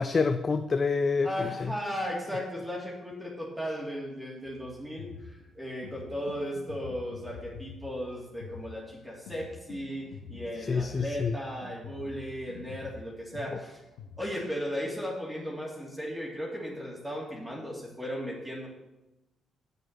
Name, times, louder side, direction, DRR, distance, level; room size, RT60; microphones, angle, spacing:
voice 1, 0.0-1.7 10.6-11.4, left 4 dB, 45° left, 9 dB, 0.5 m, -27 dB
voice 2, 1.2-13.8 14.2-18.7, equal, 10° right, -4 dB, 3.1 m, -36 dB
sound 1, 4.5-14.2, left 5 dB, 80° left, 1.0 m, -46 dB
8.3 x 6.9 x 5.9 m, 0.98 s
hypercardioid pair, 45°, 0 cm